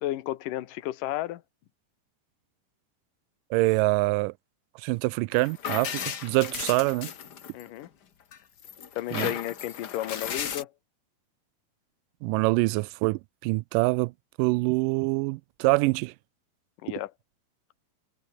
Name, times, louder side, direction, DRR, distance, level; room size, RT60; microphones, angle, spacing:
voice 1, 0.0-1.4 7.5-7.9 9.0-10.7 16.8-17.1, left 14 dB, 75° left, 2.8 m, -33 dB
voice 2, 3.5-4.3 4.8-7.1 9.1-9.3 12.2-14.1 14.4-16.1, right 23 dB, 85° right, 2.1 m, -25 dB
sound 1, 5.3-7.9 8.3-10.6, left 8 dB, 55° left, 1.1 m, -35 dB
omnidirectional pair, 3.9 m